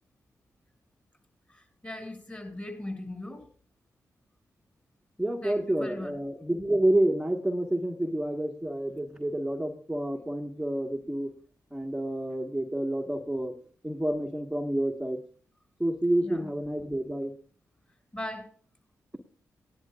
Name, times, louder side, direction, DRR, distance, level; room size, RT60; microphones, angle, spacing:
voice 1, 1.5-3.5 5.4-6.1 16.2-16.5 18.1-18.5, left 1 dB, 25° left, 4 dB, 6.5 m, -39 dB
voice 2, 5.2-11.3 11.7-13.6 13.8-15.2 15.8-17.3, right 1 dB, 5° right, 0 dB, 1.5 m, -29 dB
19.0 x 10.5 x 2.4 m, 0.41 s
supercardioid pair, 45°, 7 cm